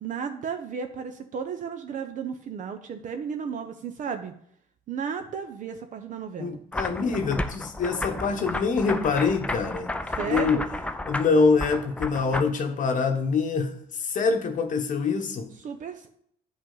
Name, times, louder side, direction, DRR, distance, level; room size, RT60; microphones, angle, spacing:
voice 1, 0.0-4.3 4.9-6.6 10.2-10.7 15.6-16.1, right 6 dB, 50° right, 7 dB, 0.7 m, -34 dB
voice 2, 6.4-9.9 10.3-10.6 11.1-15.5, left 4 dB, 50° left, 5 dB, 0.9 m, -25 dB
sound 1, 6.7-12.4, left 2 dB, 5° left, 0.4 m, -32 dB
9.3 x 5.2 x 3.9 m, 0.66 s
cardioid pair, 110°, 17 cm